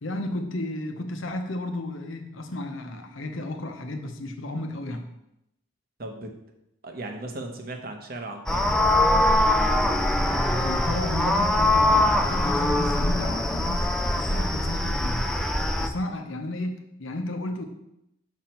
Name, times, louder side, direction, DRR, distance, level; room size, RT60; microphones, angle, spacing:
voice 1, 0.0-5.1 10.2-15.3 15.8-17.7, left 1 dB, 75° left, 5 dB, 0.9 m, -33 dB
voice 2, 6.0-6.3 6.8-8.7 14.3-14.6, right 2 dB, 50° right, 4 dB, 1.0 m, -37 dB
sound 1, 8.5-15.9, left 1 dB, 5° left, 0.4 m, -22 dB
6.3 x 5.7 x 4.4 m, 0.83 s
head